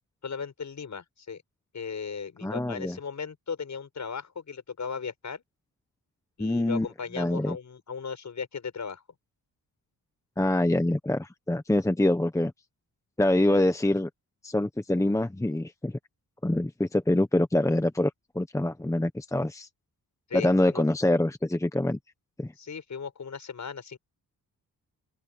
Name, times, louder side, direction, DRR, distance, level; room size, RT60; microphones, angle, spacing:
voice 1, 0.2-1.4 1.7-5.4 6.4-9.0 13.5-13.6 20.3-20.8 22.6-24.0, left 6 dB, 50° left, 6.8 m, -37 dB
voice 2, 2.4-3.0 6.4-6.9 7.2-7.6 10.4-12.5 13.2-14.1 14.4-15.9 16.4-19.7 20.3-22.0 22.4-22.5, left 1 dB, 10° left, 1.1 m, -25 dB
open air
wide cardioid pair, 115°, 36 cm